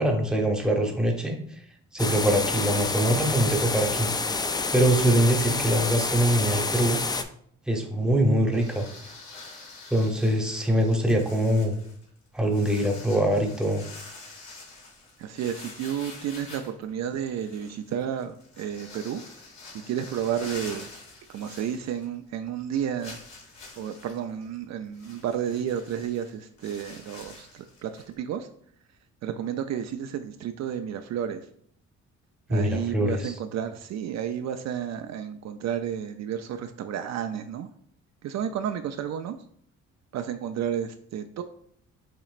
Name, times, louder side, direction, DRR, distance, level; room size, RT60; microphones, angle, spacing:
voice 1, 0.0-1.4 1.9-4.1 4.7-7.0 7.7-8.8 9.9-11.7 12.3-13.8 32.5-33.3, right 1 dB, 5° right, 2 dB, 0.9 m, -23 dB
sound 1, 2.0-7.2, left 3 dB, 15° left, 0.3 m, -28 dB
sound 2, 8.5-22.3 22.6-22.7 23.0-28.1, left 3 dB, 70° left, 2.0 m, -46 dB
voice 2, 15.2-19.2 19.9-20.9 21.3-23.2 23.8-28.5 29.2-31.4 32.5-37.7 38.2-39.4 40.1-41.4, right 9 dB, 60° right, 8 dB, 0.4 m, -31 dB
7.2 x 3.0 x 2.5 m, 0.64 s
cardioid pair, 90°, 30 cm